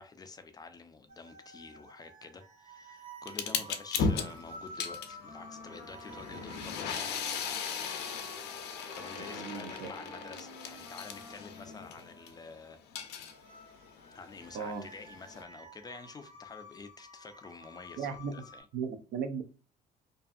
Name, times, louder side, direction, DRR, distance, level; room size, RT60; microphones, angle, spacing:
voice 1, 0.0-7.6 8.9-12.8 14.1-18.7, left 4 dB, 25° left, 0.4 m, -49 dB
sound 1, 1.1-18.6, equal, 50° right, 1.1 m, -53 dB
sound 2, 3.3-12.3 12.7-15.4, left 5 dB, 80° left, 0.5 m, -37 dB
Wind instrument woodwind instrument, 4.8-13.0, equal, 10° right, 0.7 m, -52 dB
voice 2, 9.1-9.9 14.5-14.9 18.0-18.3 18.7-19.4, right 6 dB, 70° right, 0.5 m, -37 dB
2.6 x 2.4 x 2.3 m
cardioid pair, 110°, 17 cm